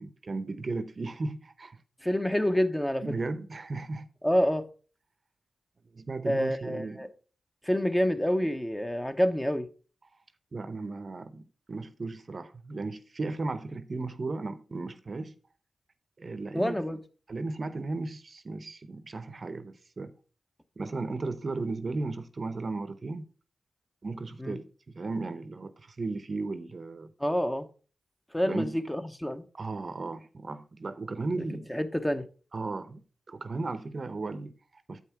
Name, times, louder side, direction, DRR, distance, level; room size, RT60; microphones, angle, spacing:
voice 1, 0.0-1.8 2.3-2.4 3.0-4.1 5.9-7.0 10.5-15.3 16.2-16.8 17.3-20.1 20.8-23.3 24.0-24.7 24.9-27.1 28.4-28.8 29.5-31.7 32.5-33.0 33.3-35.0, right 3 dB, 50° right, 0.8 m, -35 dB
voice 2, 2.0-3.1 4.2-4.7 6.3-7.1 7.6-9.7 16.5-17.0 24.4-24.6 27.2-27.7 28.3-29.4 31.7-32.3, equal, 10° left, 0.9 m, -27 dB
7.9 x 5.5 x 4.6 m
cardioid pair, 45°, 0 cm